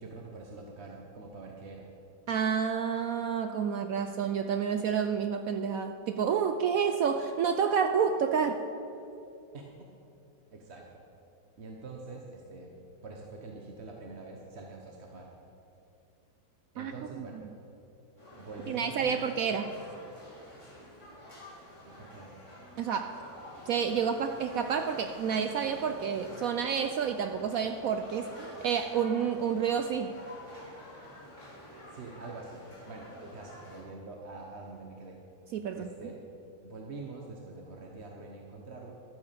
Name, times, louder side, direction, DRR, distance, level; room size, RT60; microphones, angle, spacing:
voice 1, 0.0-1.9 9.5-9.9 10.5-10.9 11.6-15.3 16.7-17.4 18.4-19.3 21.8-22.4 31.9-35.2 35.7-36.2 36.6-38.9, right 3 dB, 45° right, 0 dB, 1.1 m, -45 dB
voice 2, 2.3-8.6 16.8-17.3 18.7-19.7 22.8-23.2 23.7-30.1 35.5-35.9, right 7 dB, 70° right, 7 dB, 0.8 m, -29 dB
sound 1, 18.2-33.8, left 1 dB, 15° left, 3.1 m, -49 dB
12.0 x 8.9 x 6.7 m, 2.7 s
omnidirectional pair, 1.9 m